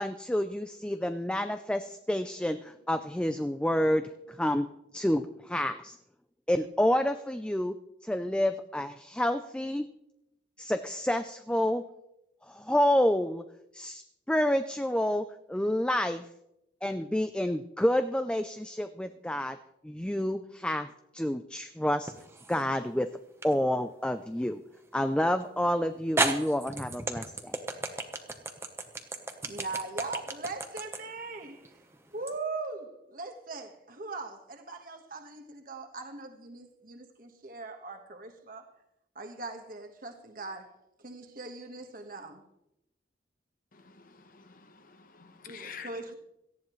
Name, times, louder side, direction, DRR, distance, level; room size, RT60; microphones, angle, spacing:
voice 1, 0.0-4.7 4.9-6.0 6.5-7.7 8.0-9.9 10.6-11.8 12.5-13.4 13.7-14.0 14.3-16.3 16.8-19.6 19.8-20.9 21.1-22.1 22.5-23.1 23.4-24.6 24.9-27.5, left 1 dB, 5° left, 0.4 m, -29 dB
sound 1, 22.1-22.7 23.4-23.5 25.4-25.5 26.2-32.4, right 2 dB, 15° right, 1.0 m, -33 dB
voice 2, 29.4-31.7 32.1-38.7 39.1-40.7 41.0-42.4 45.4-46.1, right 3 dB, 50° right, 1.4 m, -40 dB
voice 3, 43.8-45.9, left 6 dB, 50° left, 1.1 m, -48 dB
18.0 x 14.0 x 3.1 m
head